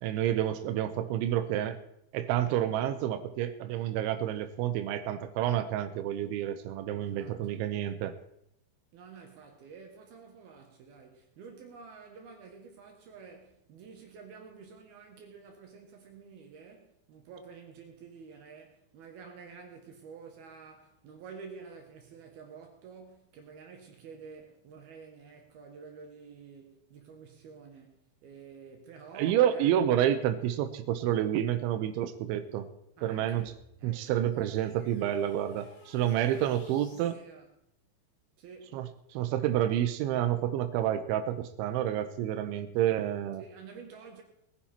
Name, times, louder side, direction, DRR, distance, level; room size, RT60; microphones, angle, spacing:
voice 1, 0.0-1.8 2.1-8.1 29.2-32.7 33.0-33.5 33.8-37.2 38.7-43.4, right 11 dB, 90° right, 3.2 m, -29 dB
voice 2, 7.0-7.6 8.9-29.9 33.0-33.5 33.8-34.3 35.9-37.5 38.4-38.9 43.4-44.2, right 5 dB, 65° right, 3.0 m, -50 dB
sound 1, 33.3-37.2, left 2 dB, 75° left, 7.7 m, -58 dB
20.0 x 10.0 x 4.3 m
omnidirectional pair, 5.3 m